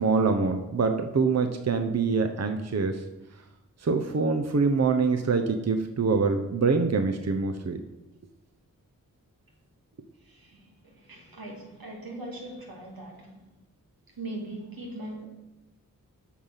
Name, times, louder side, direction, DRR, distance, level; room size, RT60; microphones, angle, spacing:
voice 1, 0.0-3.0 3.8-7.8, right 4 dB, 50° right, 6 dB, 0.7 m, -25 dB
voice 2, 10.2-13.4 14.2-15.3, right 1 dB, 85° right, -1 dB, 2.1 m, -40 dB
8.5 x 5.7 x 5.6 m, 0.99 s
cardioid pair, 45°, 35 cm